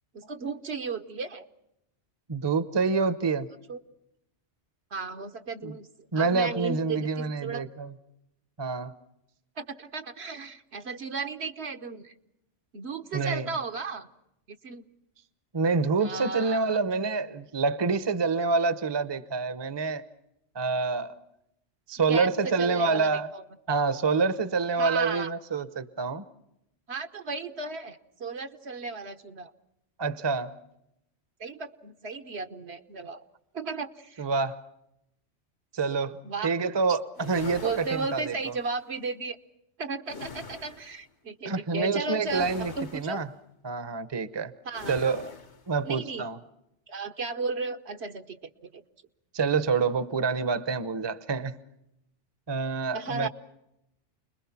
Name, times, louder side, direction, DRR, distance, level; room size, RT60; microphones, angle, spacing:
voice 1, 0.1-1.4 3.7-3.8 4.9-5.9 6.1-7.6 9.6-12.1 12.7-14.1 14.6-14.8 16.0-16.8 22.1-23.4 24.8-25.3 26.9-29.5 31.4-33.2 33.5-34.2 36.2-36.5 36.9-37.0 37.6-39.4 39.8-43.2 44.6-45.1 45.9-46.2 46.9-48.8 52.9-53.3, right 4 dB, 65° right, 7 dB, 1.4 m, -35 dB
voice 2, 2.3-3.5 5.6-5.7 6.1-7.9 8.6-8.9 13.1-13.5 15.5-20.0 20.5-21.2 21.9-23.3 23.7-26.2 30.0-30.5 34.2-34.6 35.7-38.5 41.4-43.3 43.6-44.5 44.9-45.3 45.7-46.4 49.3-51.6 52.5-53.3, right 4 dB, 25° right, 13 dB, 0.8 m, -27 dB
sound 1, 37.1-38.8 40.1-41.0 42.2-43.3 44.7-45.7, left 4 dB, 70° left, 1.8 m, -43 dB
30.0 x 21.5 x 5.9 m, 0.84 s
omnidirectional pair, 1.2 m